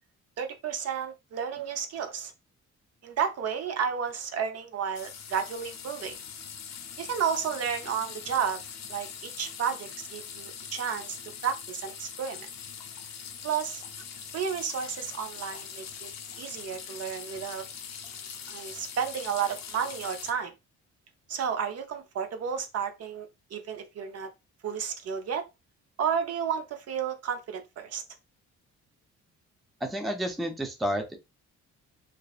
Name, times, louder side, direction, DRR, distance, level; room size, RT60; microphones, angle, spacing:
voice 1, 0.4-2.3 3.0-6.2 7.0-8.6 8.9-11.2 11.4-12.5 13.4-13.8 14.3-16.1 16.4-17.6 18.5-20.5 21.3-24.3 24.6-25.4 26.0-28.0, right 7 dB, 55° right, 0.5 m, -32 dB
sound 1, 4.9-20.3, left 7 dB, 60° left, 0.6 m, -42 dB
voice 2, 29.8-31.2, equal, ahead, 0.4 m, -30 dB
2.6 x 2.1 x 2.3 m
cardioid pair, 90°, 30 cm